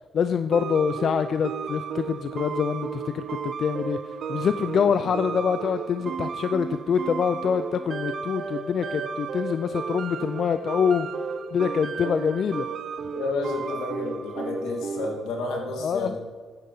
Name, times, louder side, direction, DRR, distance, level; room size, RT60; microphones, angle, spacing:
voice 1, 0.1-11.1 11.5-12.7 15.8-16.2, left 7 dB, 55° left, 10 dB, 0.3 m, -25 dB
sound 1, 0.5-15.3, right 6 dB, 55° right, 0.5 m, -33 dB
voice 2, 13.1-16.2, left 2 dB, 90° left, 0 dB, 2.1 m, -30 dB
9.6 x 8.3 x 3.9 m, 1.6 s
cardioid pair, 90°, 0 cm